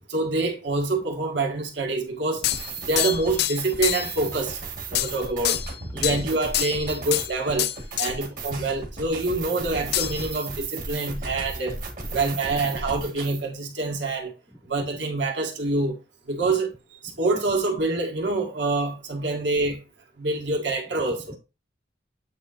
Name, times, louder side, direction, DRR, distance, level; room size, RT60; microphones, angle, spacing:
voice 1, 0.1-2.4 2.9-4.6 4.9-5.6 5.9-7.7 8.0-11.8 12.1-14.3 14.7-16.0 16.3-16.7 17.2-19.8 20.2-21.4, right 3 dB, 65° right, 1.6 m, -26 dB
sound 1, 2.4-4.2 4.9-5.2 5.4-6.2 6.5-7.3 7.6-8.1 9.9-10.4, left 13 dB, 60° left, 0.3 m, -26 dB
voice 2, 2.4-2.6 4.2-4.3 5.9-6.2 12.4-12.6 14.5-14.6 16.4-16.6 21.3-21.4, equal, 5° left, 0.6 m, -43 dB
sound 2, 2.4-13.4, right 3 dB, 45° right, 1.6 m, -35 dB
8.3 x 2.9 x 3.9 m
head